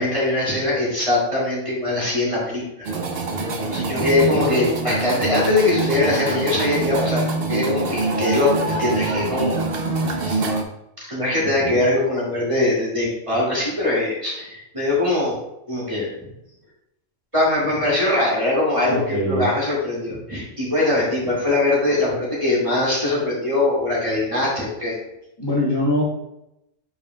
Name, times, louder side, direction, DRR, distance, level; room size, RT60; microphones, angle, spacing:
voice 1, 0.0-2.9 3.7-9.6 10.0-10.4 11.0-15.4 15.7-16.1 17.3-25.0, left 2 dB, 25° right, -7 dB, 2.1 m, -22 dB
sound 1, 2.9-10.6, right 2 dB, 55° right, 0.9 m, -24 dB
voice 2, 3.9-4.4 11.4-11.8 18.9-19.5 25.4-26.0, equal, 20° left, -8 dB, 1.5 m, -24 dB
8.4 x 5.0 x 2.2 m, 0.85 s
omnidirectional pair, 1.3 m